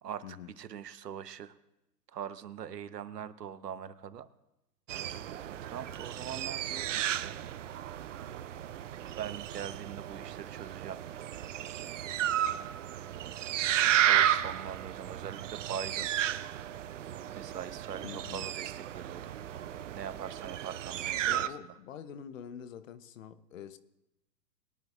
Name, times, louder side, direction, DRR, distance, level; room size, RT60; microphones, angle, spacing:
voice 1, 0.0-1.6 2.1-4.3 5.6-7.4 9.2-11.0 14.0-16.1 17.3-19.4 19.9-21.5, right 8 dB, 70° right, 1.0 m, -42 dB
sound 1, 4.9-21.5, right 11 dB, 50° right, 0.6 m, -33 dB
voice 2, 18.0-18.4 21.3-23.8, left 8 dB, 50° left, 0.9 m, -45 dB
22.5 x 10.5 x 2.4 m
hypercardioid pair, 125°, 50 cm